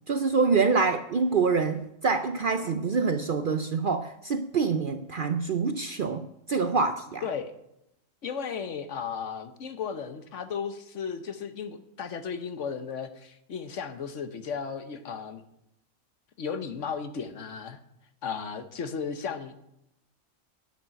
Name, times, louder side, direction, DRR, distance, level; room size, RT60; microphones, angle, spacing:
voice 1, 0.1-7.2, right 4 dB, 55° right, 0.6 m, -26 dB
voice 2, 7.2-7.5 8.2-15.4 16.4-17.8 18.2-19.7, left 6 dB, 65° left, 1.2 m, -35 dB
10.5 x 6.8 x 8.9 m
omnidirectional pair, 1.4 m